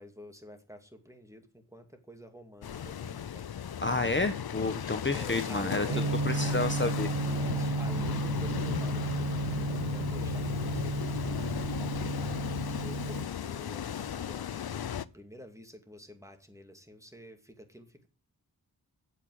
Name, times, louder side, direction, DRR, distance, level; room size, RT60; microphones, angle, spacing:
voice 1, 0.0-3.5 5.1-6.1 7.2-12.4 12.7-18.1, equal, 10° right, 2.5 m, -49 dB
sound 1, 2.6-15.1, left 9 dB, 70° left, 0.6 m, -36 dB
voice 2, 3.8-5.9 6.3-7.1, left 2 dB, 30° left, 1.1 m, -30 dB
Gong, 5.9-13.3, right 3 dB, 80° right, 0.8 m, -33 dB
8.6 x 7.5 x 7.9 m
wide cardioid pair, 40°, 38 cm